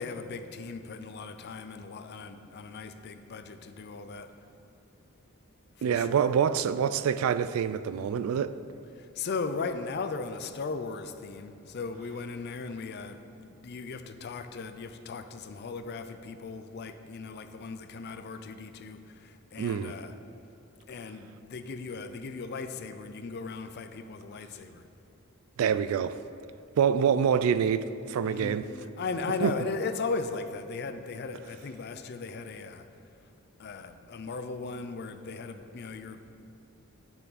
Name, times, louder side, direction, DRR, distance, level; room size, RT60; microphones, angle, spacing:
voice 1, 0.0-4.3 5.8-6.3 9.0-20.1 20.9-24.8 28.2-28.6 29.0-32.9 33.6-36.3, left 4 dB, 50° left, 0.4 m, -37 dB
voice 2, 5.8-8.5 19.6-19.9 25.6-26.2 26.8-28.7 29.4-29.5, right 7 dB, 75° right, 0.3 m, -26 dB
9.2 x 5.8 x 4.0 m
head